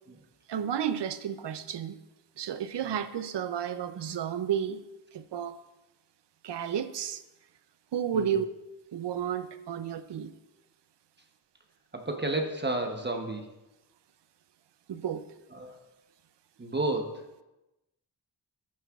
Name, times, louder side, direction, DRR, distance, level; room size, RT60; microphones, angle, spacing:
voice 1, 0.5-2.0 2.4-4.8 5.1-5.6 6.4-7.2 7.9-8.5 8.9-10.3 14.9-15.3, right 9 dB, 75° right, 11 dB, 0.7 m, -32 dB
voice 2, 11.9-13.5 15.5-15.8 16.6-17.2, right 2 dB, 25° right, 3 dB, 0.9 m, -32 dB
15.0 x 8.5 x 2.4 m, 0.99 s
wide cardioid pair, 130°, 43 cm